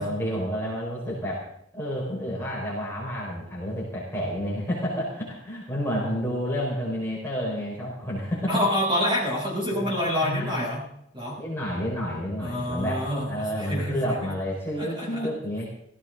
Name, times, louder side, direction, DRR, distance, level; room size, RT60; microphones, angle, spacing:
voice 1, 0.0-1.5 1.7-8.5 9.7-9.9 10.2-10.7 11.4-15.7, equal, 10° left, -5 dB, 5.2 m, -30 dB
voice 2, 8.5-10.9 11.1-11.4 12.4-14.1 14.8-15.3, left 1 dB, 25° right, -3 dB, 7.7 m, -27 dB
17.5 x 16.5 x 3.9 m, 0.71 s
head